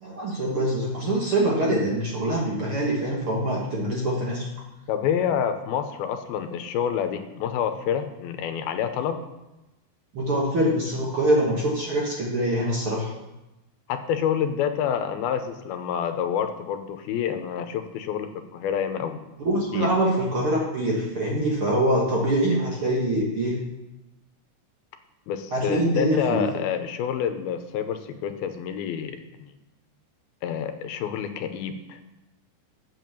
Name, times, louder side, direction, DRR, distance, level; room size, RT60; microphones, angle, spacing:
voice 1, 0.0-4.4 10.1-13.1 19.4-23.6 25.5-26.5, right 1 dB, 50° right, -3 dB, 1.7 m, -24 dB
voice 2, 4.9-9.2 13.9-19.2 19.7-19.9 25.3-29.5 30.4-32.0, left 8 dB, 85° left, 8 dB, 2.6 m, -28 dB
8.1 x 7.7 x 6.9 m, 0.99 s
omnidirectional pair, 4.3 m